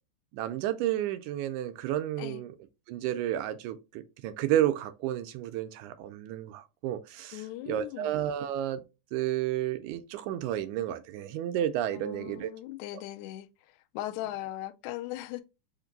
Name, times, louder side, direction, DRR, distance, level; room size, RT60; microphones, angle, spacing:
voice 1, 0.3-2.5 2.9-8.8 9.1-12.5, right 12 dB, 80° right, 1.9 m, -31 dB
voice 2, 7.3-8.1 11.9-15.4, left 15 dB, 80° left, 1.8 m, -39 dB
5.1 x 2.6 x 3.9 m
omnidirectional pair, 3.7 m